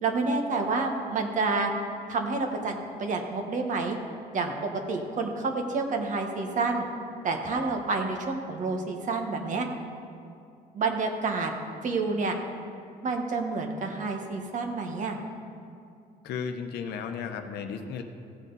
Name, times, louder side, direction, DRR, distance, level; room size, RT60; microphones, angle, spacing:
voice 1, 0.0-1.7 2.1-4.0 4.3-6.9 7.2-9.7 10.7-11.5 11.8-12.4 13.0-15.2, right 3 dB, 50° right, 3 dB, 1.3 m, -29 dB
voice 2, 16.2-18.0, left 6 dB, 75° left, 6 dB, 0.9 m, -34 dB
16.0 x 7.4 x 4.0 m, 2.4 s
cardioid pair, 110°, 17 cm